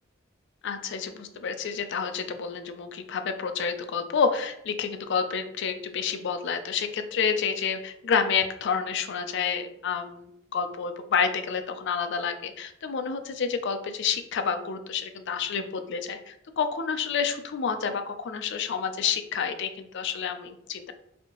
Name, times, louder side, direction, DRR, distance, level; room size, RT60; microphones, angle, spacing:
voice 1, 0.6-20.9, left 6 dB, 60° left, 8 dB, 0.4 m, -29 dB
4.2 x 2.7 x 2.9 m, 0.77 s
head